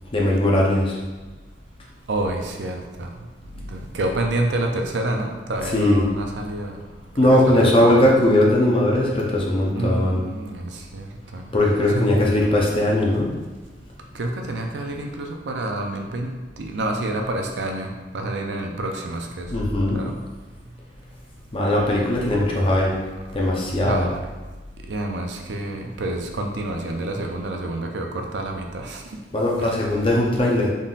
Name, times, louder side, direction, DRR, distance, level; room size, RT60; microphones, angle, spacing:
voice 1, 0.1-1.0 5.7-6.0 7.2-10.2 11.5-13.3 19.5-20.0 21.5-22.9 23.3-24.0 29.3-30.7, left 1 dB, 30° left, -3 dB, 0.6 m, -19 dB
voice 2, 2.1-3.1 3.6-6.8 7.2-8.1 9.7-11.5 11.9-12.2 14.1-19.5 19.9-20.1 23.8-24.2 24.9-29.0 29.6-29.8, right 1 dB, 85° right, 3 dB, 0.5 m, -28 dB
4.0 x 3.7 x 2.4 m, 1.2 s
head